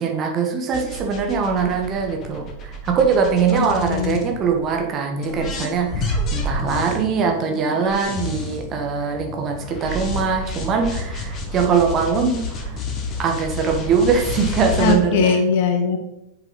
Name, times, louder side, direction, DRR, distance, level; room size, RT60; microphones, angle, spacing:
voice 1, 0.0-12.8 13.2-15.4, right 5 dB, 30° right, 3 dB, 1.4 m, -22 dB
sound 1, 0.7-4.8 5.2-15.0, left 1 dB, 30° left, 1.6 m, -29 dB
voice 2, 3.5-4.2 14.8-16.0, left 5 dB, 50° left, 5 dB, 1.5 m, -20 dB
7.9 x 7.1 x 4.1 m, 0.87 s
figure-of-eight pair, 90°, 0 cm